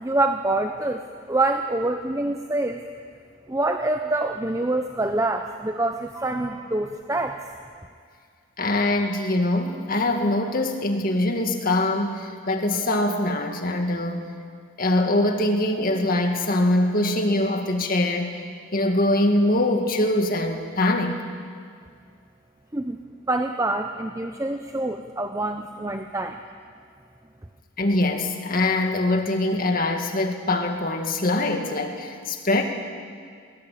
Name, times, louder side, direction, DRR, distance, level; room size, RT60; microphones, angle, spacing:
voice 1, 0.0-2.8 3.5-7.4 22.7-23.0 23.3-26.4, right 2 dB, 15° right, 6 dB, 0.7 m, -26 dB
voice 2, 8.6-14.3 14.8-18.5 18.7-21.2 27.8-32.6, left 1 dB, 45° left, 4 dB, 2.1 m, -23 dB
21.0 x 19.0 x 8.5 m, 2.2 s
head